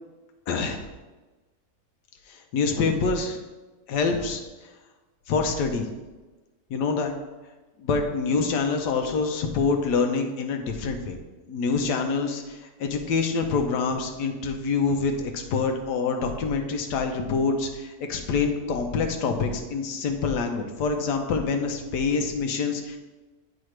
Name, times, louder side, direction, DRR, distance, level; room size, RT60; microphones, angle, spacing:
voice 1, 0.5-0.8 2.3-3.4 3.9-4.4 5.3-5.9 6.7-7.1 7.8-11.2 11.5-23.0, left 4 dB, 80° left, 4 dB, 1.3 m, -26 dB
8.0 x 4.8 x 3.2 m, 1.2 s
omnidirectional pair, 1.8 m